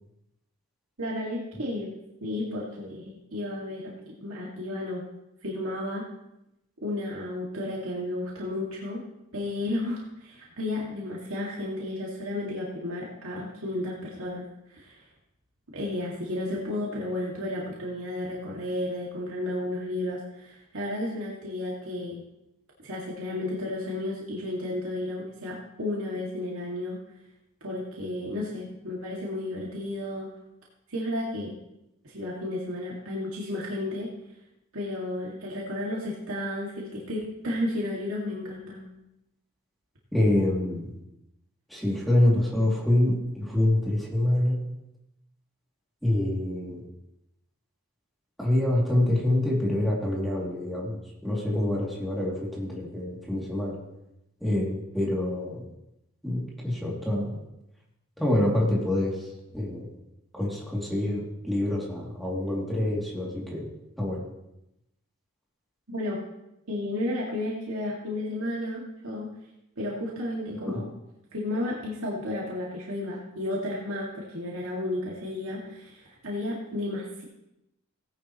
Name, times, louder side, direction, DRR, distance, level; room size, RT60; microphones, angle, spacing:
voice 1, 1.0-1.9 2.2-5.0 5.4-6.1 6.8-9.0 9.3-15.0 15.7-22.2 22.8-27.0 27.6-30.3 30.9-31.5 32.0-34.1 34.7-38.8 65.9-66.2 66.7-69.3 69.8-70.8 71.3-77.2, left 1 dB, 75° right, -4 dB, 2.2 m, -32 dB
voice 2, 40.1-41.0 41.7-44.6 46.0-46.8 48.4-53.8 54.4-55.6 56.2-57.4 58.2-59.9 60.3-63.7 64.0-64.2 70.7-70.8, left 1 dB, ahead, -5 dB, 2.7 m, -26 dB
17.5 x 10.5 x 3.1 m, 0.87 s
head